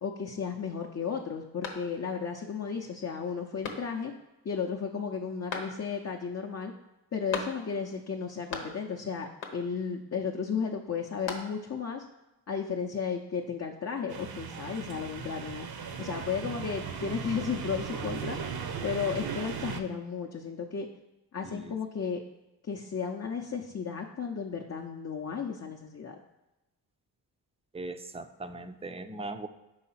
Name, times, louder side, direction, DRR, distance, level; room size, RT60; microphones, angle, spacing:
voice 1, 0.0-4.1 4.4-6.7 7.1-12.0 12.5-15.7 16.0-18.4 18.8-20.9 21.3-22.2 22.6-26.2, left 6 dB, 35° left, 1 dB, 0.6 m, -34 dB
sound 1, 1.6-2.3 2.7-2.8 3.6-4.2 5.5-6.1 7.3-7.9 8.2-9.0 9.4-9.9 10.9-11.8, left 4 dB, 85° left, 0.9 m, -40 dB
sound 2, 14.1-19.8, right 6 dB, 55° right, 0.7 m, -37 dB
voice 2, 21.4-21.8 27.7-29.5, right 2 dB, 15° right, 9 dB, 0.5 m, -39 dB
4.9 x 3.8 x 5.6 m, 1.0 s
supercardioid pair, 45°, 45 cm